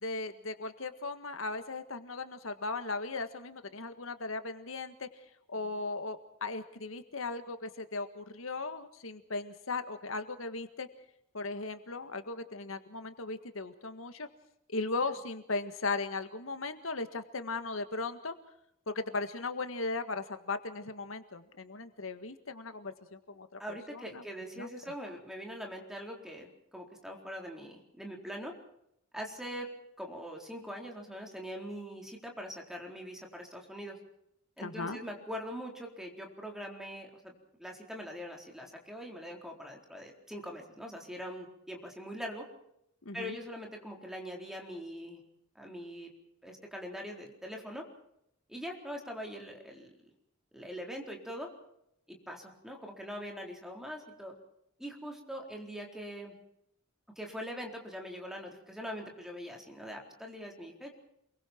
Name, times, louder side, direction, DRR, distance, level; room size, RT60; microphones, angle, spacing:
voice 1, 0.0-5.1 5.5-10.9 11.3-14.3 14.7-18.4 18.9-24.2 24.6-24.7 34.6-35.0 43.0-43.4, left 3 dB, 80° left, 9 dB, 1.7 m, -37 dB
voice 2, 23.6-28.5 29.1-29.7 30.0-34.0 34.6-37.3 37.6-42.5 43.1-45.2 45.6-46.1 46.4-47.8 48.5-49.9 50.5-51.5 52.1-54.3 54.8-56.3 57.2-61.0, equal, ahead, 1 dB, 4.1 m, -42 dB
28.5 x 22.5 x 4.5 m, 0.78 s
head